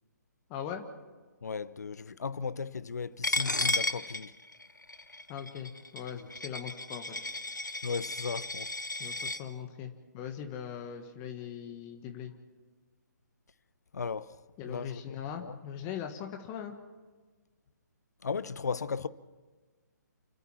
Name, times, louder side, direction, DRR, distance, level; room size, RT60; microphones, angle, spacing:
voice 1, 0.5-0.8 5.3-7.2 9.0-12.3 14.6-16.8, left 8 dB, 25° left, 1.5 m, -40 dB
voice 2, 1.4-4.3 6.1-6.3 7.8-8.8 13.9-14.4 14.7-15.6 18.2-19.1, left 5 dB, 65° left, 0.8 m, -36 dB
Coin (dropping), 3.2-9.4, left 2 dB, 85° left, 1.1 m, -34 dB
29.5 x 12.5 x 7.2 m
figure-of-eight pair, 135°, 10 cm